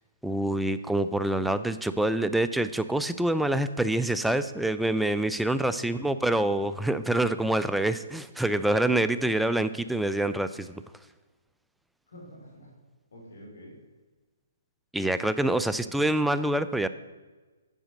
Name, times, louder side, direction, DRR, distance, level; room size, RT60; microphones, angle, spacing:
voice 1, 0.2-10.8 14.9-16.9, right 1 dB, ahead, 12 dB, 0.4 m, -26 dB
voice 2, 5.6-6.1 12.1-12.7 13.1-13.7 15.6-16.0, equal, 75° left, -1 dB, 3.3 m, -47 dB
9.0 x 5.0 x 6.4 m, 1.3 s
hypercardioid pair, 140°, 0 cm